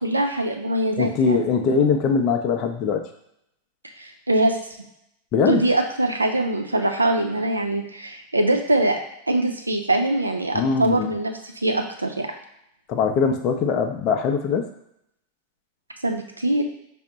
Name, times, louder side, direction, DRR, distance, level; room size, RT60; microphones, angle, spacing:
voice 1, 0.0-1.4 4.0-4.6 5.5-9.0 9.3-11.3 11.6-12.3 16.0-16.6, right 1 dB, 80° right, 4 dB, 0.5 m, -23 dB
voice 2, 1.0-3.0 5.3-5.8 10.5-11.1 12.9-14.7, left 5 dB, 40° left, 5 dB, 0.5 m, -21 dB
5.1 x 2.1 x 3.8 m, 0.77 s
figure-of-eight pair, 90°, 0 cm